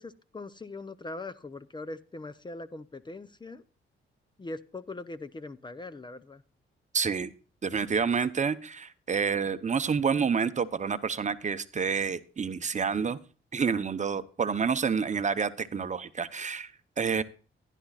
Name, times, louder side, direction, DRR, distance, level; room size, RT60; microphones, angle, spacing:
voice 1, 0.0-3.6 4.4-6.4, left 2 dB, 20° left, 14 dB, 0.6 m, -41 dB
voice 2, 6.9-7.3 7.6-13.2 13.5-16.7 17.0-17.2, right 6 dB, 35° right, 12 dB, 0.8 m, -28 dB
15.5 x 11.0 x 2.4 m, 0.37 s
cardioid pair, 100°, 21 cm